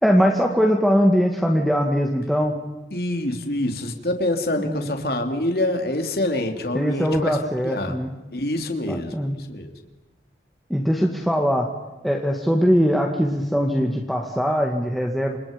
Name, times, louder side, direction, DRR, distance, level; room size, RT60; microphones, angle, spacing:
voice 1, 0.0-2.6 4.6-5.0 6.7-8.1 8.9-9.4 10.7-11.7 12.0-15.4, equal, ahead, 0 dB, 2.1 m, -21 dB
voice 2, 2.9-7.4 7.6-7.9 8.3-9.7, left 1 dB, 55° left, 5 dB, 3.1 m, -26 dB
29.5 x 27.0 x 5.3 m, 1.1 s
head